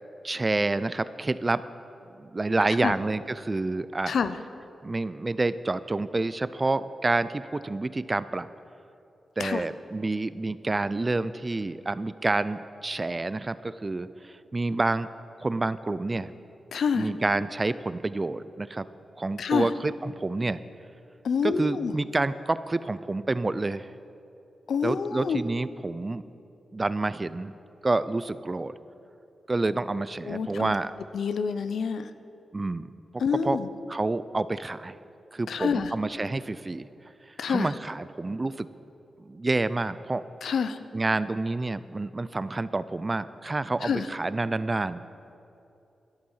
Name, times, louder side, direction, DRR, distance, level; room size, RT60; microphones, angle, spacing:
voice 1, 0.2-1.6 2.2-4.2 4.8-8.5 9.4-15.1 15.4-16.3 17.0-18.9 19.2-20.6 21.4-23.9 24.8-26.2 26.7-27.5 27.8-28.7 29.5-30.9 32.5-32.9 33.4-33.6 33.9-35.0 35.3-36.9 37.3-38.7 39.2-40.2 40.9-45.0, right 2 dB, 30° right, 15 dB, 0.5 m, -28 dB
voice 2, 4.1-4.4 9.4-9.6 16.7-17.1 19.4-19.7 21.2-21.9 24.7-25.4 30.3-30.7 31.1-32.1 33.2-33.7 35.5-35.9 37.4-37.7 40.4-40.8 43.8-44.1, left 6 dB, 80° left, 11 dB, 0.6 m, -27 dB
12.5 x 10.5 x 5.6 m, 2.7 s
cardioid pair, 65°, 0 cm